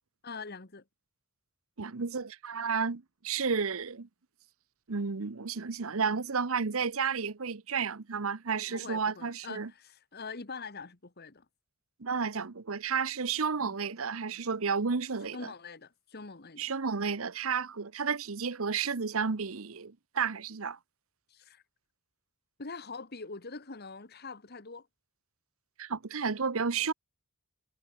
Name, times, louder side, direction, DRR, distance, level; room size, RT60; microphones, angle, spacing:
voice 1, 0.2-0.8 8.6-11.4 13.6-13.8 15.3-16.7 21.3-21.6 22.6-24.9, left 4 dB, 45° left, 1.5 m, -44 dB
voice 2, 1.8-4.1 4.9-9.7 12.0-15.4 16.6-20.8 25.8-26.9, right 5 dB, 65° right, 0.9 m, -32 dB
head